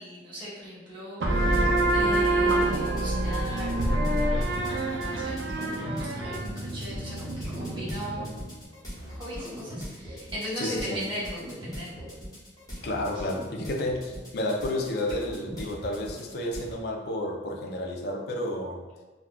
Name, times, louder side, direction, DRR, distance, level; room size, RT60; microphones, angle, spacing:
voice 1, 0.0-4.6 4.9-8.3 9.1-12.1 13.1-13.2, equal, 25° right, -8 dB, 1.0 m, -39 dB
sound 1, 1.2-8.5, right 1 dB, 70° right, 0.4 m, -27 dB
sound 2, 1.3-16.7, equal, 20° left, 0.9 m, -40 dB
voice 2, 10.6-11.0 12.8-18.8, left 1 dB, 60° left, 1 dB, 0.4 m, -31 dB
3.5 x 2.3 x 2.3 m, 1.3 s
head